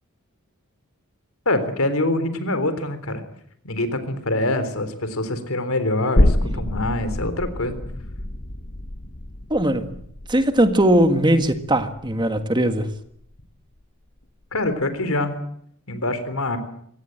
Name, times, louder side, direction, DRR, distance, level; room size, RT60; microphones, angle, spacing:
voice 1, 1.5-3.2 3.6-7.8 14.5-15.3 15.9-16.6, left 2 dB, 75° left, 3.7 m, -24 dB
sound 1, 6.2-13.4 13.8-13.9, left 1 dB, 40° left, 1.3 m, -26 dB
voice 2, 9.5-10.0 10.3-12.9, right 1 dB, 20° right, 1.7 m, -19 dB
24.0 x 18.0 x 8.9 m
head